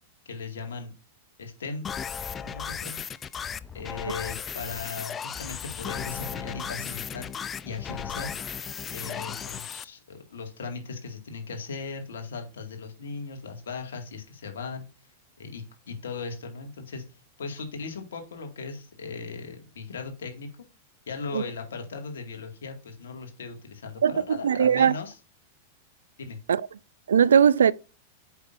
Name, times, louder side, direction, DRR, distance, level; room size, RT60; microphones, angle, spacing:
voice 1, 0.3-0.9 1.4-1.9 2.4-3.0 3.7-7.3 7.6-8.3 8.9-14.9 15.4-17.0 17.4-20.5 21.1-25.2 26.2-26.4, left 4 dB, 75° left, 2.0 m, -38 dB
sound 1, 1.8-9.8, left 7 dB, 25° left, 0.5 m, -35 dB
voice 2, 24.0-24.9 26.5-26.6 27.1-27.7, right 7 dB, 80° right, 0.3 m, -19 dB
8.1 x 6.0 x 2.6 m
hypercardioid pair, 100°, 0 cm